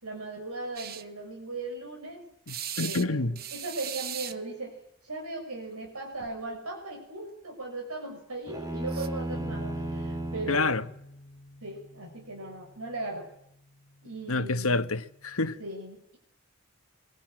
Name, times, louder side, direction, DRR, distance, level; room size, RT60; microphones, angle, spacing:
voice 1, 0.0-2.3 2.8-4.8 5.0-10.9 11.6-13.3 14.0-14.9 15.6-16.2, right 2 dB, 80° right, 6.1 m, -38 dB
sound 1, 0.8-1.0 2.5-3.1 3.4-4.4 5.7-5.9 6.2-6.4 8.9-9.1, right 10 dB, 45° right, 1.3 m, -37 dB
voice 2, 2.5-3.4 10.5-10.8 14.3-15.6, left 3 dB, 70° left, 1.3 m, -28 dB
sound 2, 8.5-10.7, right 1 dB, 15° right, 3.0 m, -34 dB
Bass guitar, 9.3-15.6, left 1 dB, 25° left, 2.7 m, -48 dB
23.5 x 23.0 x 9.0 m
head